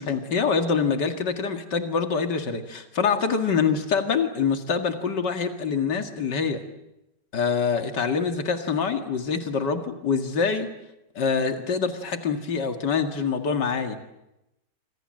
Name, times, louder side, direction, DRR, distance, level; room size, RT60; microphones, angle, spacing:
voice 1, 0.0-6.6 7.3-10.7 11.2-14.0, left 5 dB, 80° left, 6 dB, 2.7 m, -25 dB
28.0 x 26.0 x 7.8 m, 0.88 s
omnidirectional pair, 1.8 m